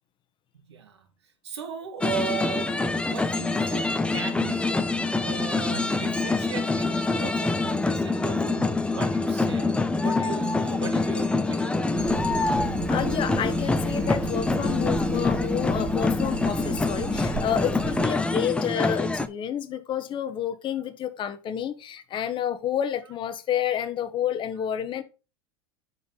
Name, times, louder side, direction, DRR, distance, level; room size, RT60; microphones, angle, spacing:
voice 1, 0.7-1.0 1.4-12.0, right 6 dB, 85° right, 1.5 m, -37 dB
sound 1, 2.0-19.3, left 3 dB, 10° left, 0.5 m, -25 dB
Hammer, 12.0-18.1, right 7 dB, 55° right, 1.0 m, -36 dB
voice 2, 12.9-25.0, left 9 dB, 35° left, 1.0 m, -29 dB
5.4 x 4.2 x 5.5 m
hypercardioid pair, 90°, 14 cm